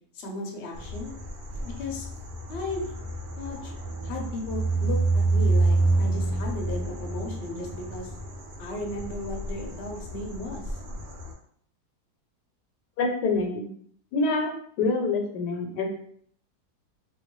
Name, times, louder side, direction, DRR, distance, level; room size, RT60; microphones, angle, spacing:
voice 1, 0.1-1.1 1.8-2.1 2.5-2.9 3.4-3.8 4.0-8.1 8.6-10.8, left 2 dB, 55° left, 0 dB, 0.7 m, -35 dB
sound 1, 0.7-11.3, right 2 dB, 85° right, 1.3 m, -28 dB
voice 2, 13.0-13.7 14.1-15.9, left 3 dB, 80° left, 3 dB, 1.2 m, -26 dB
3.6 x 2.3 x 3.0 m, 0.62 s
omnidirectional pair, 1.7 m